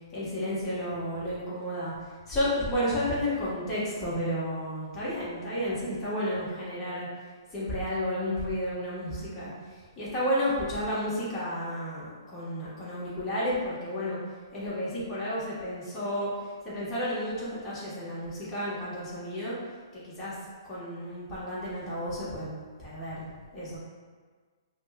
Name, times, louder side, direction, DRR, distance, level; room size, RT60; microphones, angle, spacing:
voice 1, 0.1-1.9 2.3-7.1 7.5-9.5 10.0-14.2 14.5-19.6 19.9-20.3 20.7-22.5 22.8-23.2 23.5-23.8, equal, 15° left, -11 dB, 1.2 m, -32 dB
5.2 x 2.2 x 2.3 m, 1.5 s
hypercardioid pair, 145°, 2 cm